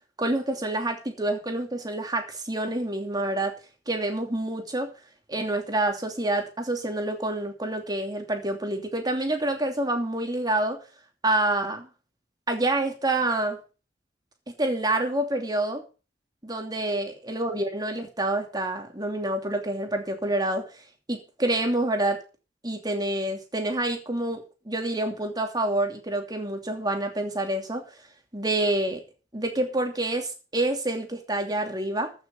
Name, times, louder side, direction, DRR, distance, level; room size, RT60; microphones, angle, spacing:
voice 1, 0.2-3.6 3.9-4.9 5.3-10.8 11.2-11.9 12.5-13.6 14.6-15.8 16.4-20.7 21.1-22.2 22.6-27.8 28.3-29.0 29.3-32.1, right 1 dB, 25° right, 4 dB, 2.8 m, -27 dB
14.0 x 6.6 x 6.9 m, 0.34 s
head